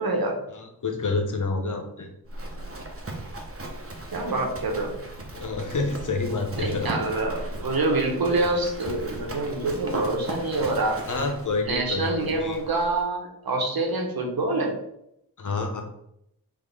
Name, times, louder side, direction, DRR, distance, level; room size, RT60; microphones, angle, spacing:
voice 1, 0.0-0.4 4.1-4.9 6.5-11.0 11.7-14.7, right 2 dB, 70° right, 2 dB, 1.2 m, -26 dB
voice 2, 0.5-2.1 5.3-7.0 11.1-12.6 15.4-15.8, left 3 dB, 50° left, 3 dB, 1.0 m, -28 dB
Livestock farm animals working animals, 2.3-13.1, right 1 dB, 35° right, 1.0 m, -37 dB
3.9 x 3.4 x 3.4 m, 0.77 s
cardioid pair, 45°, 38 cm